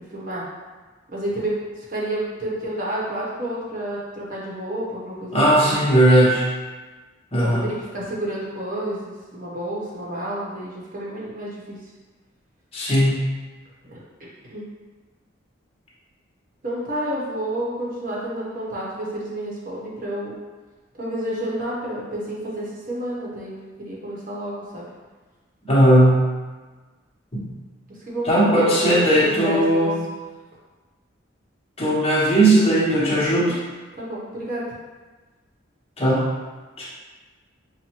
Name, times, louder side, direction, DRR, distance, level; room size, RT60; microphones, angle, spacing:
voice 1, 1.1-1.6 1.9-5.7 7.3-11.8 13.9-14.7 16.6-20.3 21.0-23.5 23.8-24.9 28.1-29.9 33.3-33.6 34.0-34.6, right 1 dB, 45° right, -6 dB, 0.9 m, -30 dB
voice 2, 5.3-6.5 7.3-7.7 12.7-13.2 25.7-26.2 27.3-27.5 28.2-30.0 31.8-33.6 36.0-36.2 36.8-36.9, right 1 dB, 30° left, -7 dB, 0.9 m, -17 dB
5.6 x 2.1 x 2.9 m, 1.3 s
head